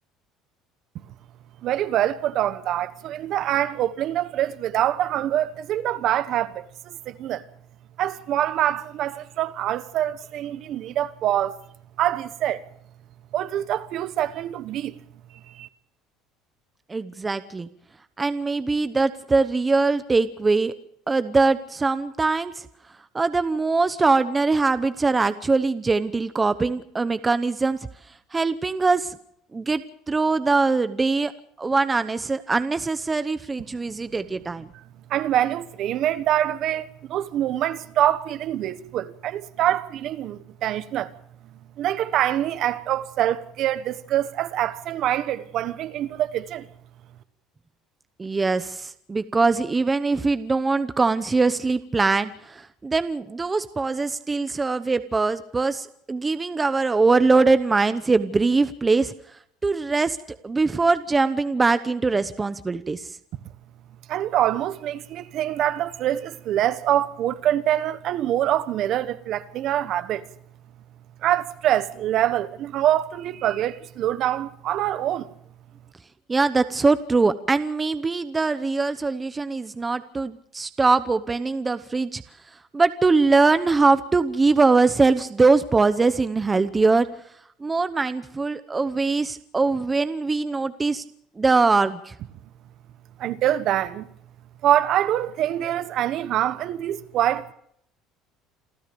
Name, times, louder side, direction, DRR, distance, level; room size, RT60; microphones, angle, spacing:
voice 1, 1.6-7.4 8.0-11.6 12.0-12.7 13.3-15.0 15.5-15.7 34.7-34.8 35.1-41.1 41.8-46.7 64.1-70.2 71.2-75.3 93.2-94.1 94.6-97.5, right 12 dB, 50° right, 1.3 m, -25 dB
voice 2, 16.9-17.7 18.2-20.7 21.1-22.6 23.1-27.8 28.3-29.2 29.5-31.3 31.6-34.7 48.2-59.1 59.6-60.2 60.4-63.1 76.3-82.2 82.7-87.1 87.6-91.0 91.4-92.1, right 3 dB, 15° right, 0.9 m, -22 dB
28.0 x 14.0 x 6.9 m
cardioid pair, 140°, 0 cm